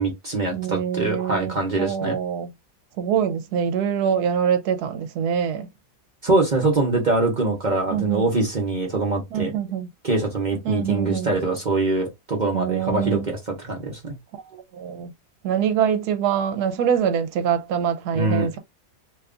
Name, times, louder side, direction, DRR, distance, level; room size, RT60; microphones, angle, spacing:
voice 1, 0.0-2.2 6.2-9.5 10.0-14.1 18.1-18.5, right 2 dB, 40° right, 0.7 m, -23 dB
voice 2, 0.5-2.5 3.0-5.7 7.9-8.3 9.3-9.9 10.6-11.3 12.5-13.3 14.3-15.1 15.4-18.6, right 8 dB, 80° right, 1.1 m, -24 dB
2.8 x 2.3 x 3.6 m
omnidirectional pair, 1.7 m